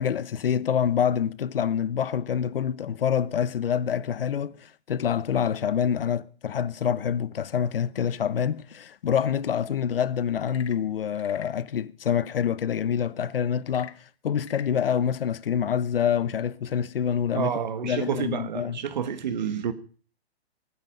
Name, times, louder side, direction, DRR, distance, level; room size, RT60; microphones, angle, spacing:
voice 1, 0.0-14.0 14.2-17.5 17.8-18.8, left 8 dB, 60° left, 0.9 m, -26 dB
Frog / Percussion / Wood, 10.3-11.6 13.6-14.8, left 8 dB, 85° left, 1.5 m, -45 dB
voice 2, 17.3-19.7, right 8 dB, 45° right, 1.5 m, -29 dB
23.0 x 9.6 x 5.2 m
hypercardioid pair, 175°, 32 cm